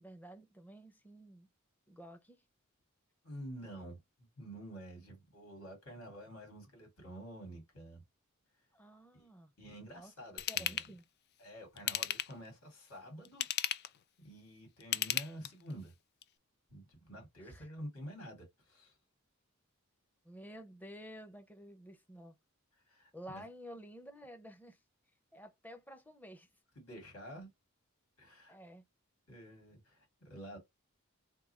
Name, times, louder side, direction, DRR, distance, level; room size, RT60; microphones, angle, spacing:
voice 1, 0.0-1.5 1.9-2.4 8.7-9.5 9.9-10.1 10.5-11.0 17.4-17.7 20.2-22.4 23.1-24.8 25.3-26.5 28.5-28.8, equal, 10° left, 0.6 m, -51 dB
voice 2, 3.2-8.0 9.1-9.3 9.6-10.8 11.4-13.5 14.2-15.9 16.7-19.0 22.8-23.5 26.8-27.5 28.2-28.6 29.3-30.6, equal, 75° left, 2.2 m, -49 dB
Ratchet pawl / Tools, 10.4-10.9 11.8-12.5 13.2-14.0 14.8-15.7 16.2-16.3, left 11 dB, 50° left, 0.3 m, -35 dB
3.7 x 2.3 x 4.2 m
head